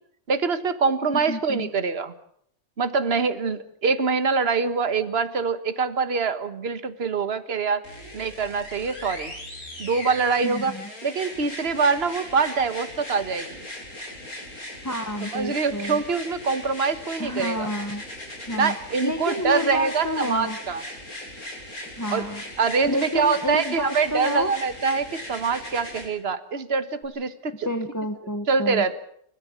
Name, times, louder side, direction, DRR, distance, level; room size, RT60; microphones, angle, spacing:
voice 1, 0.3-2.1 2.8-7.8 8.1-9.3 9.8-10.7 11.0-13.6 15.2-17.7 18.5-20.8 22.1-22.3 22.6-27.7 28.5-29.0, right 5 dB, 45° right, 11 dB, 1.6 m, -24 dB
voice 2, 1.3-1.7 10.4-10.9 14.8-16.0 17.2-18.0 18.5-18.7 19.0-20.6 22.0-22.4 22.9-24.5 27.6-28.8, left 1 dB, 10° left, 6 dB, 1.4 m, -29 dB
sound 1, 7.8-26.1 27.0-27.1, left 1 dB, 75° left, 7.9 m, -38 dB
29.5 x 14.5 x 8.8 m, 0.68 s
omnidirectional pair, 1.6 m